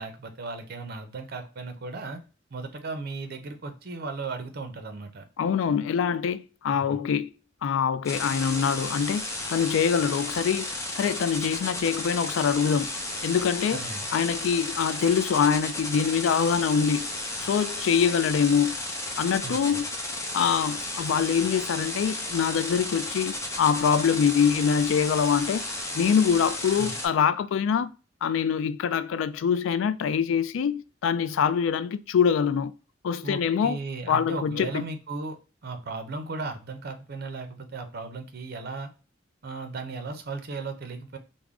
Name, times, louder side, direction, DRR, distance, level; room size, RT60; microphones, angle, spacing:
voice 1, 0.0-2.2 2.5-5.2 6.7-7.0 13.7-14.1 19.4-19.8 26.8-27.0 33.2-35.4 35.6-38.9 39.4-41.2, right 3 dB, 55° right, 0.6 m, -36 dB
voice 2, 5.4-7.3 7.6-9.2 9.5-12.9 13.2-13.8 14.1-17.1 17.4-18.8 19.2-19.9 20.3-25.6 25.9-27.9 28.2-32.7 33.0-33.8 34.1-34.8, left 7 dB, 80° left, 0.3 m, -24 dB
sound 1, 8.1-27.1, left 2 dB, 15° left, 0.7 m, -33 dB
3.5 x 2.1 x 3.5 m
head